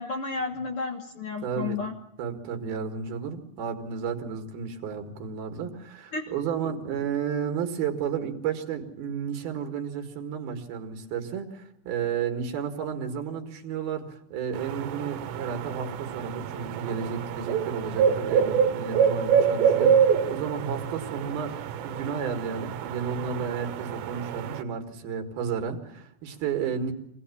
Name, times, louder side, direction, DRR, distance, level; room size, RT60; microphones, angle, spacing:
voice 1, 0.0-1.9 6.1-6.2, left 4 dB, 70° left, 4 dB, 1.3 m, -32 dB
voice 2, 1.4-1.8 2.2-26.9, right 7 dB, 65° right, 5 dB, 3.6 m, -32 dB
sound 1, 14.5-24.6, right 7 dB, 80° right, 3.4 m, -26 dB
25.5 x 18.5 x 8.5 m, 0.78 s
omnidirectional pair, 5.0 m